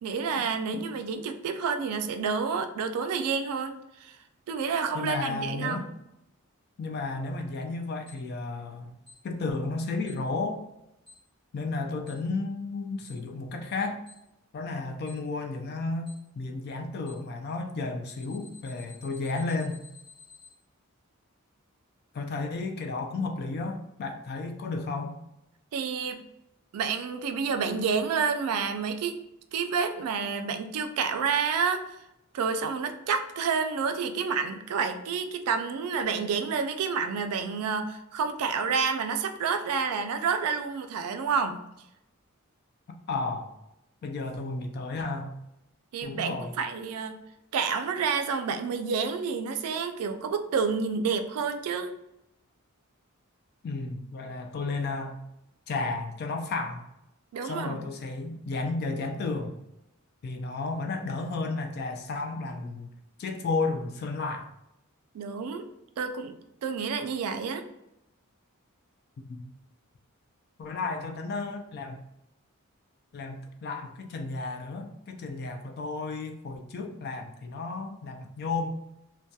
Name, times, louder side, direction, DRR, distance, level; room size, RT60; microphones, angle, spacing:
voice 1, 0.0-4.2 4.5-5.9 25.7-26.2 26.7-29.2 29.5-31.8 32.3-41.6 45.9-47.2 47.5-51.9 57.3-57.9 65.1-65.7 66.0-66.4 66.6-67.6, right 5 dB, 85° right, 8 dB, 0.3 m, -29 dB
voice 2, 4.9-5.9 6.8-9.0 9.2-10.6 11.5-14.0 14.5-19.8 22.1-25.2 42.9-43.5 44.0-45.4 46.0-46.6 53.6-55.2 55.7-56.8 57.4-59.6 60.2-62.9 63.2-64.5 69.3-69.4 70.6-72.0 73.1-78.8, left 3 dB, 45° left, 4 dB, 0.3 m, -33 dB
Alarm, 8.1-8.2 9.1-9.2 10.1-10.2 11.1-11.2 12.1-12.2 13.1-13.2 14.1-14.2 15.1-15.2 16.1-16.2 17.1-17.2 18.1-20.5, left 5 dB, 25° left, 1.4 m, -51 dB
2.7 x 2.2 x 2.2 m, 0.86 s
head